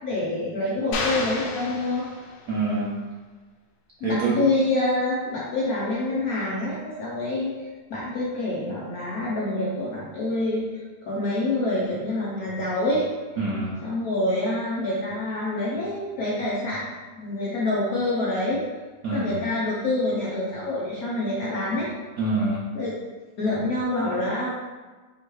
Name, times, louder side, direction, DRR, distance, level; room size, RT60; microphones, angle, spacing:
voice 1, 0.0-2.1 4.0-13.0 13.8-18.6 19.1-21.9 22.7-22.9 23.4-24.5, left 2 dB, 60° left, -7 dB, 1.0 m, -26 dB
sound 1, 0.9-2.7, left 3 dB, 80° left, 1.4 m, -31 dB
voice 2, 2.5-2.9 4.0-4.4 13.4-13.8 19.0-19.4 22.2-22.6, right 3 dB, 60° right, -7 dB, 1.0 m, -25 dB
3.6 x 3.1 x 4.5 m, 1.3 s
omnidirectional pair, 2.3 m